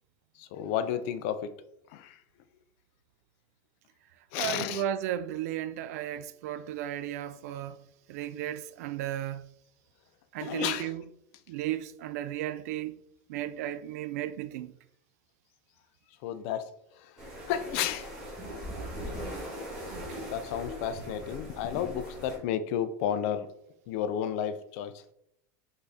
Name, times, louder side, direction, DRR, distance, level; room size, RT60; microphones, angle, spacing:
voice 1, 0.4-1.5 1.9-2.2 4.3-4.8 10.4-10.9 16.2-16.7 17.0-17.2 17.5-18.1 19.2-19.4 20.2-23.5 23.9-25.0, left 9 dB, 55° left, 0.4 m, -32 dB
voice 2, 4.4-7.8 8.1-9.5 10.3-11.0 11.5-13.0 13.3-14.7 19.9-20.2, right 12 dB, 75° right, 0.4 m, -35 dB
sound 1, 17.2-22.4, equal, 10° right, 1.4 m, -40 dB
4.0 x 3.6 x 3.4 m
supercardioid pair, 165°, 8 cm